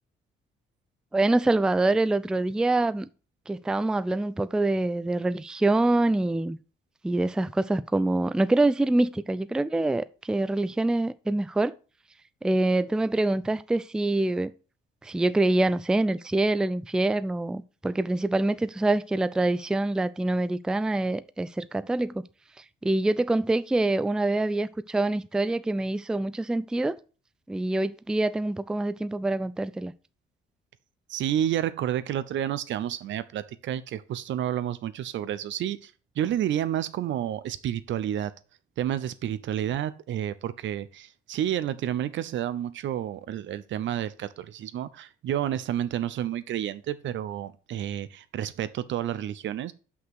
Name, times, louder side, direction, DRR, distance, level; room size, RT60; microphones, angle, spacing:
voice 1, 1.1-3.1 3.5-6.6 7.0-11.7 12.4-14.5 15.0-22.2 22.6-27.0 27.5-29.9, right 2 dB, 5° right, 0.3 m, -25 dB
voice 2, 31.1-35.9 36.2-38.3 38.8-49.7, right 11 dB, 70° right, 0.6 m, -30 dB
6.0 x 5.7 x 4.7 m
cardioid pair, 90°, 20 cm